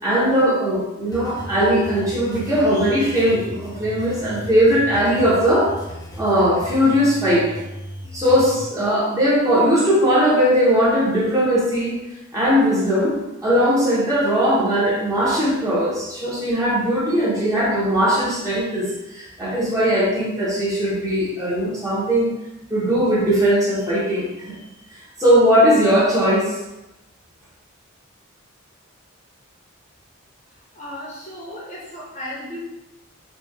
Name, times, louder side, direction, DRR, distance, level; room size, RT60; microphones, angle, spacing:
voice 1, 0.0-5.7 6.2-7.5 8.1-12.0 12.3-22.3 22.7-24.5 25.2-26.6, equal, 15° right, -7 dB, 1.1 m, -19 dB
sound 1, 1.1-8.6, equal, 20° left, 0.7 m, -36 dB
voice 2, 30.7-32.6, left 1 dB, 35° left, -5 dB, 1.0 m, -35 dB
4.2 x 2.5 x 3.5 m, 0.94 s
head